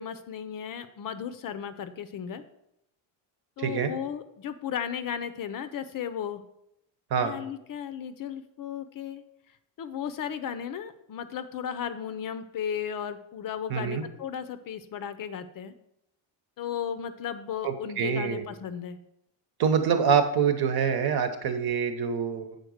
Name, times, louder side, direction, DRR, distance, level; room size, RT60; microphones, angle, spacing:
voice 1, 0.0-2.4 3.6-6.4 7.2-9.2 9.8-15.7 16.6-19.0, left 8 dB, 45° left, 12 dB, 0.5 m, -35 dB
voice 2, 3.6-3.9 7.1-7.4 13.7-14.0 17.6-18.4 19.6-22.6, right 6 dB, 55° right, 8 dB, 1.0 m, -25 dB
7.9 x 4.0 x 6.4 m, 0.80 s
cardioid pair, 150°, 46 cm